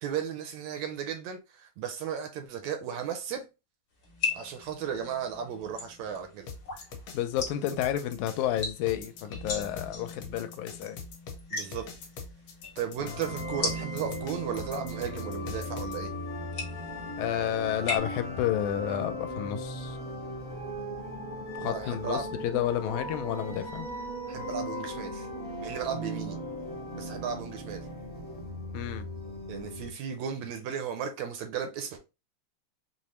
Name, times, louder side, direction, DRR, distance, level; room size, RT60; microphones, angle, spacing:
voice 1, 0.0-3.5 4.3-6.5 11.5-11.9 12.8-16.1 21.6-22.3 24.3-25.3 25.6-26.4 26.9-27.9 29.5-32.0, right 8 dB, 80° right, 1.7 m, -35 dB
sound 1, 4.0-18.0, left 4 dB, 50° left, 1.2 m, -40 dB
sound 2, 6.5-16.0, left 5 dB, 65° left, 1.8 m, -43 dB
voice 2, 7.1-11.0 17.2-20.0 21.6-23.9 28.7-29.0, left 11 dB, 85° left, 1.9 m, -31 dB
sound 3, 13.0-29.9, equal, 10° left, 0.5 m, -38 dB
5.1 x 2.0 x 3.0 m
omnidirectional pair, 3.4 m